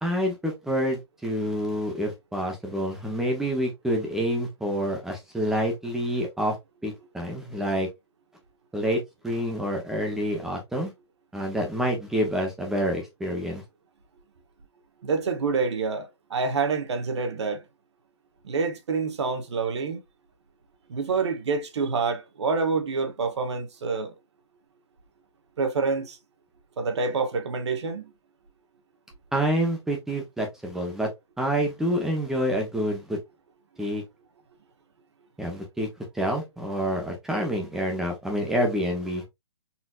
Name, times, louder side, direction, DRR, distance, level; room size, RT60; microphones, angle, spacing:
voice 1, 0.0-6.5 6.8-7.9 8.7-10.9 11.3-13.6 29.3-31.1 31.4-33.2 33.8-34.0 35.4-35.9 36.1-39.2, equal, 5° right, 0.7 m, -27 dB
voice 2, 15.0-17.6 18.4-20.0 20.9-24.1 25.6-26.2 26.8-28.1, right 4 dB, 70° right, 1.0 m, -27 dB
4.2 x 2.7 x 2.3 m
hypercardioid pair, 165°, 15 cm